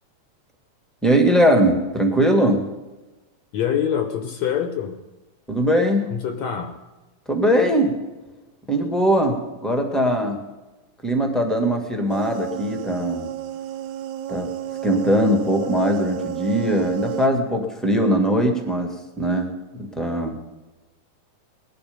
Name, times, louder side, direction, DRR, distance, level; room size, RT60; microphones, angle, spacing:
voice 1, 1.0-2.6 5.5-6.1 7.3-7.9 8.7-10.4 11.0-13.3 14.3-14.5 14.8-20.4, equal, ahead, 3 dB, 1.5 m, -20 dB
voice 2, 3.5-5.0 6.1-6.8, left 8 dB, 70° left, 7 dB, 2.2 m, -25 dB
sound 1, 12.1-17.3, right 12 dB, 80° right, 1.8 m, -31 dB
19.5 x 11.5 x 5.3 m, 1.1 s
omnidirectional pair, 3.5 m